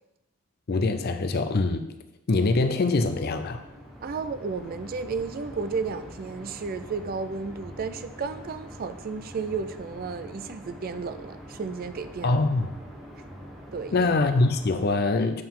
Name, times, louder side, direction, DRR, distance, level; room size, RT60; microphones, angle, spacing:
voice 1, 0.7-1.9 2.3-3.6 12.2-12.7 13.9-15.4, left 3 dB, 45° left, 8 dB, 0.5 m, -23 dB
sound 1, 2.3-14.9, equal, ahead, 1.0 m, -44 dB
voice 2, 4.0-12.4 13.7-14.1, right 4 dB, 45° right, 11 dB, 0.4 m, -33 dB
7.6 x 4.5 x 3.7 m, 0.94 s
head